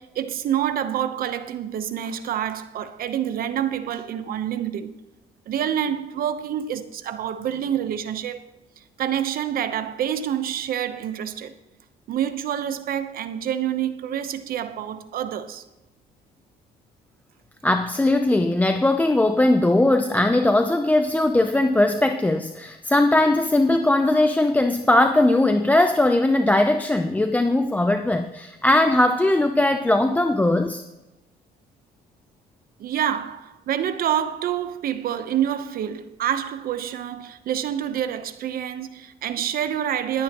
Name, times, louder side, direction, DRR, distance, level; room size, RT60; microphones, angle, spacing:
voice 1, 0.0-4.9 5.5-8.4 9.0-11.5 12.1-15.6 32.8-40.2, right 10 dB, 60° right, 0.9 m, -27 dB
voice 2, 17.6-30.8, left 1 dB, 10° left, 0.6 m, -19 dB
22.5 x 8.9 x 3.0 m
cardioid pair, 110°, 17 cm